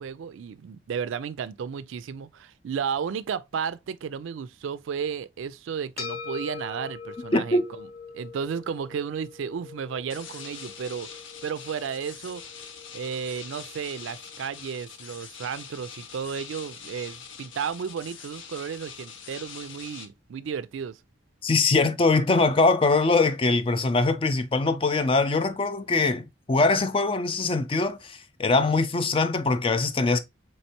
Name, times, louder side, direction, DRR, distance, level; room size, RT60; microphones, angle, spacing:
voice 1, 0.0-7.9 8.1-11.1 11.4-12.5 12.9-21.0, right 7 dB, 85° right, 0.4 m, -33 dB
sound 1, 6.0-14.6, left 5 dB, 50° left, 0.9 m, -43 dB
voice 2, 7.3-7.6 21.4-30.2, left 3 dB, 30° left, 0.3 m, -22 dB
sound 2, 10.1-20.1, left 7 dB, 85° left, 0.7 m, -44 dB
4.4 x 3.3 x 2.8 m
head